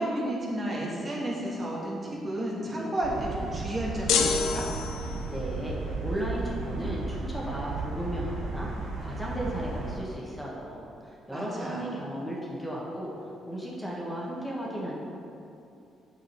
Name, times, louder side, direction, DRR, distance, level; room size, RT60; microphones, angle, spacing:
voice 1, 0.0-4.7 11.3-12.1, right 1 dB, 35° right, -4 dB, 1.8 m, -32 dB
sound 1, 3.0-10.0, right 3 dB, 80° right, 1.0 m, -34 dB
sound 2, 4.1-5.4, left 6 dB, 85° left, 0.6 m, -27 dB
voice 2, 5.3-13.1 13.5-14.9, equal, 5° left, -5 dB, 1.4 m, -35 dB
8.4 x 5.0 x 4.6 m, 2.7 s
cardioid pair, 90°, 0 cm